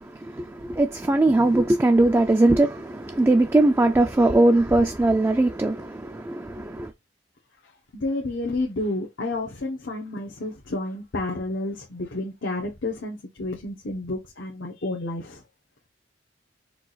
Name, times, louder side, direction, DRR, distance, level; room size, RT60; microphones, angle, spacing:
voice 1, 0.0-6.9, right 2 dB, 15° right, 0.3 m, -20 dB
voice 2, 7.6-15.4, left 2 dB, 80° left, 0.9 m, -30 dB
4.6 x 2.4 x 3.9 m
head